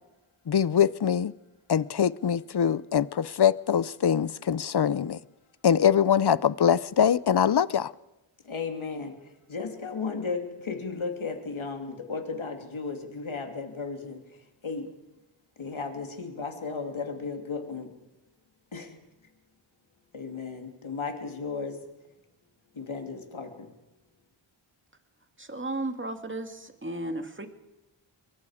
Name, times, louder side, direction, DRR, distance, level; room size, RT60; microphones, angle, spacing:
voice 1, 0.5-1.3 1.7-5.2 5.6-7.9, left 8 dB, 55° left, 0.7 m, -23 dB
voice 2, 8.4-14.2 14.6-14.9 15.6-17.9 18.7-18.9 20.1-21.8 22.7-23.7, left 4 dB, 75° left, 2.9 m, -35 dB
voice 3, 25.4-27.5, right 2 dB, 25° right, 2.1 m, -34 dB
24.0 x 23.0 x 5.0 m
wide cardioid pair, 70°, 49 cm